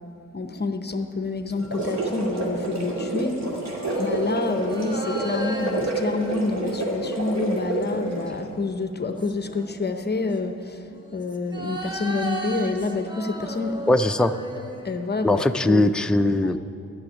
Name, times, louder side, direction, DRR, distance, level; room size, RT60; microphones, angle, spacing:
voice 1, 0.3-3.3 4.0-13.8 14.5-15.9 16.4-16.5, left 3 dB, 35° left, 7 dB, 0.8 m, -28 dB
sound 1, 1.5-2.7 3.6-8.1 8.8-10.0 10.9-15.5 15.9-16.0, right 2 dB, 15° right, 1.4 m, -37 dB
sound 2, 1.5-8.3, right 2 dB, 60° right, 2.6 m, -28 dB
voice 2, 13.9-14.3 15.2-16.6, left 1 dB, 5° left, 8 dB, 0.3 m, -20 dB
13.0 x 7.0 x 9.8 m, 2.6 s
wide cardioid pair, 110°, 31 cm